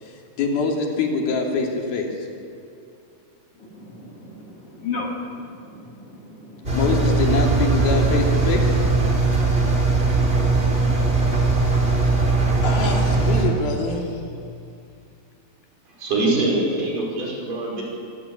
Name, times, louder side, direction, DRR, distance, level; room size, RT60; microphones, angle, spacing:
voice 1, 0.0-2.3 6.7-8.8 11.1-12.3 12.6-14.2, left 3 dB, 85° left, 1 dB, 4.7 m, -25 dB
voice 2, 3.6-6.8, left 4 dB, 40° left, -1 dB, 3.8 m, -35 dB
Engine, 6.7-13.4, right 3 dB, 15° right, 4.2 m, -19 dB
voice 3, 15.9-17.8, right 2 dB, 60° right, -2 dB, 7.1 m, -23 dB
25.5 x 18.5 x 8.7 m, 2.5 s
omnidirectional pair, 4.2 m